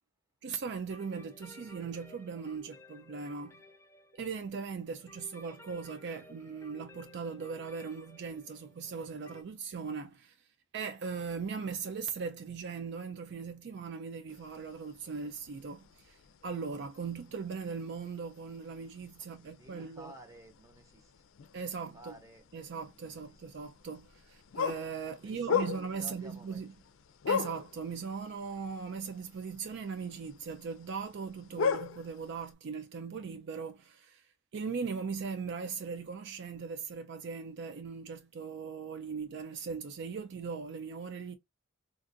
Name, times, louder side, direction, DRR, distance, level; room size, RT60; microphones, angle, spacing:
voice 1, 0.4-3.6 4.1-10.5 10.7-20.1 21.5-22.1 22.5-26.7 27.3-41.4, right 5 dB, 60° right, 0.4 m, -39 dB
sound 1, 0.9-9.4, left 1 dB, 15° left, 0.5 m, -56 dB
sound 2, 14.3-32.5, left 6 dB, 80° left, 0.4 m, -40 dB
voice 2, 19.4-21.2 21.7-22.5 23.0-23.4 25.0-26.7 28.0-28.1, right 1 dB, 15° right, 0.9 m, -54 dB
3.8 x 2.5 x 2.5 m
head